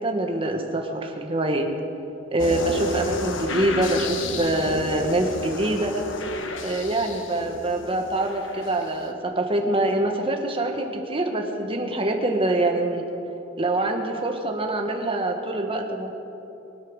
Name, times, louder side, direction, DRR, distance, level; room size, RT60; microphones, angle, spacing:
voice 1, 0.0-1.7 2.3-6.0 6.6-13.0 13.6-16.1, right 1 dB, 30° right, 3 dB, 1.5 m, -25 dB
sound 1, 2.4-9.0, left 2 dB, 70° left, 1.2 m, -32 dB
23.0 x 8.6 x 6.4 m, 2.9 s
head